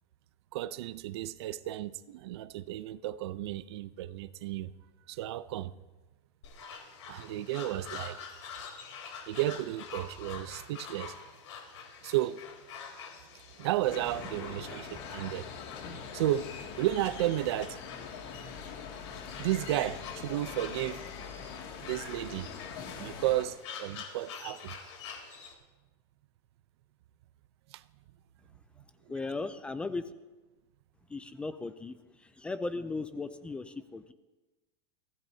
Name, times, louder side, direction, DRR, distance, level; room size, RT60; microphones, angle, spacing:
voice 1, 0.5-4.7 5.1-5.7 7.1-8.2 9.3-11.2 12.0-12.4 13.6-15.5 16.1-16.5 16.8-17.8 19.4-21.0 21.8-22.5 23.0-24.8 27.7-27.8 29.1-29.2, right 14 dB, 65° right, 0.6 m, -33 dB
sound 1, 6.4-25.5, left 6 dB, 85° left, 3.4 m, -47 dB
sound 2, 13.8-23.4, left 6 dB, 50° left, 2.3 m, -43 dB
voice 2, 29.1-30.0 31.1-32.0 32.2-34.1, left 3 dB, 5° left, 0.4 m, -37 dB
24.0 x 16.5 x 2.8 m
supercardioid pair, 165°, 15 cm